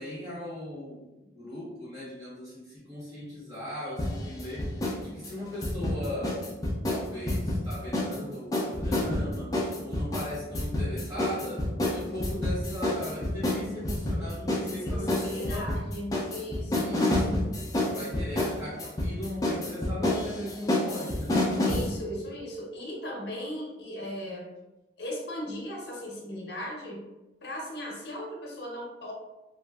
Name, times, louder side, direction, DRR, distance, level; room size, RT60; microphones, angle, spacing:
voice 1, 0.0-6.5 6.9-9.5 9.8-15.7 16.7-17.5 17.8-21.4, left 1 dB, 20° right, -10 dB, 1.4 m, -38 dB
sound 1, 4.0-5.0 5.2-8.2 8.5-21.9, left 1 dB, 20° left, 0.4 m, -28 dB
voice 2, 14.8-17.0 21.6-24.5 25.0-27.1 27.4-29.1, equal, 60° left, -1 dB, 0.8 m, -37 dB
3.0 x 2.4 x 2.3 m, 1.0 s
head